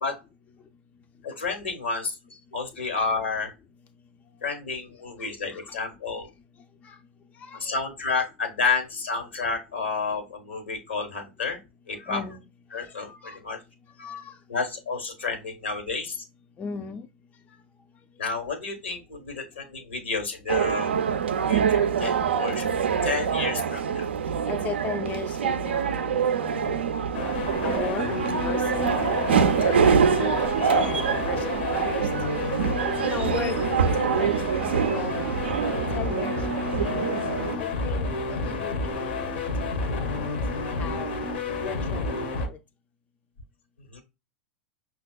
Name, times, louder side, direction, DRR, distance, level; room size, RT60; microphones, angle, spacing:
voice 1, 1.2-3.5 4.4-6.3 7.6-11.6 11.9-12.2 12.7-13.6 14.5-16.2 18.2-20.9 21.5-22.7 23.0-24.1 32.4-32.7 43.9-44.0, left 4 dB, 80° left, 1.1 m, -30 dB
voice 2, 5.2-5.8 6.8-7.0 7.4-7.8 12.1-12.4 12.7-12.9 13.2-13.3 14.0-14.4 16.6-17.1 24.5-27.0 27.6-28.9 29.4-32.1 33.0-33.6 33.9-35.2 35.9-37.1 37.6-41.1 41.6-42.6, left 6 dB, 25° left, 0.4 m, -37 dB
sound 1, 20.5-37.6, right 7 dB, 75° right, 0.3 m, -25 dB
sound 2, 27.1-42.5, left 3 dB, 65° left, 0.8 m, -30 dB
5.6 x 2.2 x 2.2 m
figure-of-eight pair, 90°, 6 cm